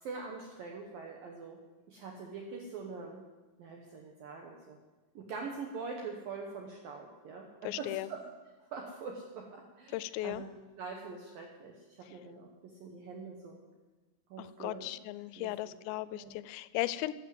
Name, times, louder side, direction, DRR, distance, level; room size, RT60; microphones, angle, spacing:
voice 1, 0.0-1.6 1.9-3.2 3.6-4.8 5.1-8.2 8.7-10.5 10.8-12.5 12.8-13.6 14.3-14.9 15.4-15.7 16.1-16.4, right 4 dB, 75° right, 1 dB, 2.1 m, -44 dB
voice 2, 7.6-8.1 9.9-10.5 14.4-17.1, left 16 dB, 90° left, 15 dB, 3.2 m, -36 dB
14.5 x 8.9 x 7.7 m, 1.2 s
omnidirectional pair, 5.8 m